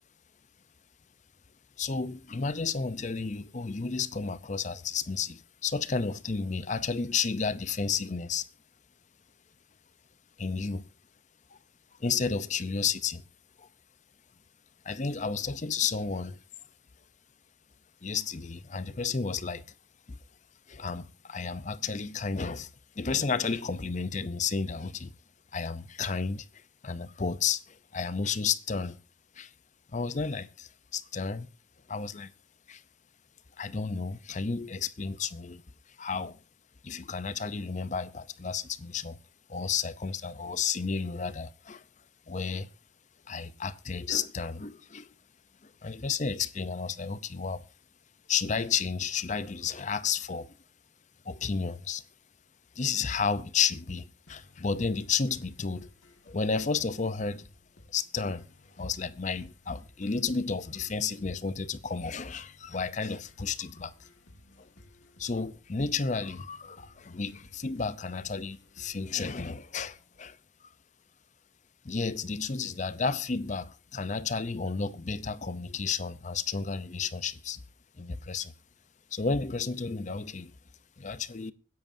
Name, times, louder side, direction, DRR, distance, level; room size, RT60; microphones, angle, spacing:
voice 1, 1.8-8.5 10.4-10.8 11.5-11.6 12.0-13.2 13.6-13.7 14.8-16.4 18.0-19.7 20.1-20.2 20.7-25.1 25.5-26.5 26.8-29.0 29.4-29.5 29.9-31.5 31.9-32.3 32.7-32.8 33.6-35.6 36.0-36.4 36.8-39.2 39.5-41.8 42.3-42.7 43.3-45.1 45.6-47.6 48.3-50.5 51.2-52.0 52.8-55.9 56.3-57.5 57.9-58.5 58.8-63.9 64.6-64.7 65.2-70.4 71.8-77.6 78.0-78.5 79.1-80.5 81.0-81.5, left 5 dB, 35° left, 0.6 m, -32 dB
sound 1, 54.3-70.2, left 1 dB, 65° left, 1.7 m, -57 dB
25.0 x 10.5 x 2.7 m
head